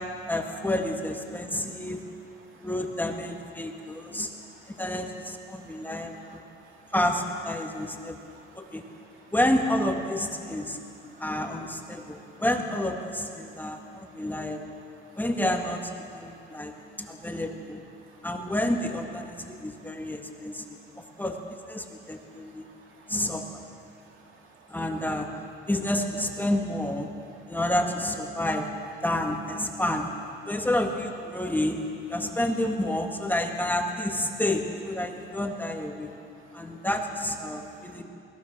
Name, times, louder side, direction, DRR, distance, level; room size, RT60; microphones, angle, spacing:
voice 1, 0.3-2.0 2.6-4.3 4.7-6.4 6.9-8.2 8.6-8.8 9.3-10.8 11.2-14.6 15.2-17.8 18.2-21.3 21.7-22.7 23.1-23.6 24.7-25.3 25.7-27.1 27.5-28.7 29.0-30.1 30.5-31.8 32.1-36.1 36.5-38.0, left 1 dB, 10° left, 2 dB, 1.9 m, -29 dB
voice 2, 3.7-4.8 5.5-6.9 7.8-7.9 8.3-9.3 11.1-11.2 12.0-12.4 13.4-14.2 14.9-15.2 16.3-17.4 17.9-18.2 19.4-19.5 19.9-21.1 21.9-23.3 23.9-24.8 36.5-36.9 37.6-38.0, right 4 dB, 80° right, 0 dB, 3.0 m, -57 dB
21.5 x 18.5 x 6.5 m, 2.6 s
cardioid pair, 90°, 20 cm